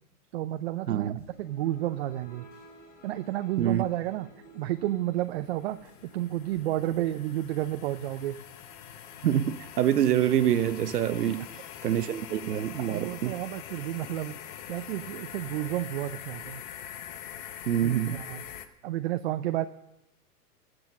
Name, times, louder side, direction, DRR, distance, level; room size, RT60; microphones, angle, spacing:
voice 1, 0.3-2.5 3.0-4.3 4.5-8.4 12.8-14.4 14.7-16.6 17.8-19.7, right 14 dB, 45° right, 0.6 m, -31 dB
voice 2, 0.9-1.2 3.6-3.8 9.2-11.5 11.8-13.3 17.7-18.2, right 10 dB, 85° right, 0.9 m, -26 dB
sound 1, 1.2-13.5, equal, 20° left, 6.3 m, -56 dB
sound 2, 4.8-18.7, left 10 dB, 35° left, 0.9 m, -44 dB
19.5 x 7.9 x 6.4 m
hypercardioid pair, 140°, 46 cm